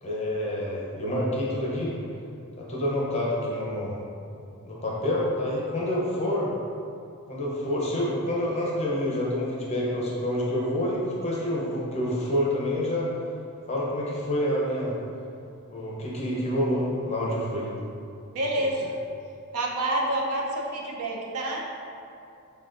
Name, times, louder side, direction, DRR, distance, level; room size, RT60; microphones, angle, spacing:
voice 1, 0.0-2.0 2.6-4.0 4.6-6.5 7.3-13.1 13.7-14.9 15.7-17.7 18.5-18.7, left 1 dB, 30° left, -5 dB, 0.6 m, -28 dB
voice 2, 18.3-18.8 19.5-21.8, right 1 dB, 80° right, -1 dB, 0.6 m, -28 dB
5.9 x 2.2 x 2.5 m, 2.5 s
head